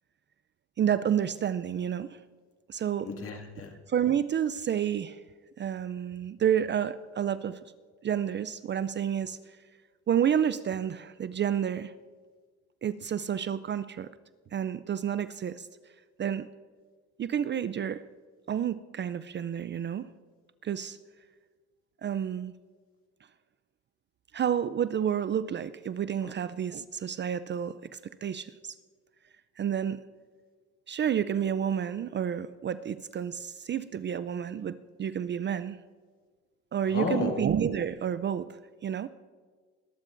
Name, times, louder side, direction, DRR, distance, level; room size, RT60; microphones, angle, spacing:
voice 1, 0.8-2.2 2.7-3.1 3.9-5.2 5.6-7.6 8.0-9.4 10.1-11.9 12.8-14.1 14.5-15.7 16.2-16.5 17.2-18.0 18.5-20.1 20.6-21.0 22.0-22.5 24.3-28.8 29.6-30.0 30.9-35.8 36.7-39.1, right 9 dB, 35° right, 14 dB, 0.4 m, -30 dB
voice 2, 3.0-3.7 26.2-26.3 36.9-37.4, left 4 dB, 45° left, 3 dB, 2.1 m, -32 dB
21.5 x 12.5 x 2.6 m, 1.5 s
cardioid pair, 90°, 31 cm